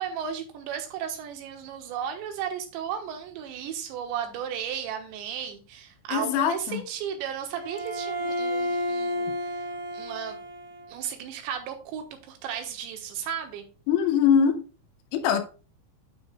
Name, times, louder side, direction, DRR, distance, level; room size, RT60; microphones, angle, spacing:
voice 1, 0.0-9.6 9.9-10.4 10.9-13.6, right 8 dB, 75° right, 3.4 m, -34 dB
voice 2, 6.1-6.8 13.9-14.6 15.1-15.4, left 7 dB, 85° left, 3.6 m, -22 dB
Bowed string instrument, 7.5-11.0, equal, 55° right, 3.0 m, -31 dB
9.3 x 6.2 x 2.3 m
omnidirectional pair, 5.3 m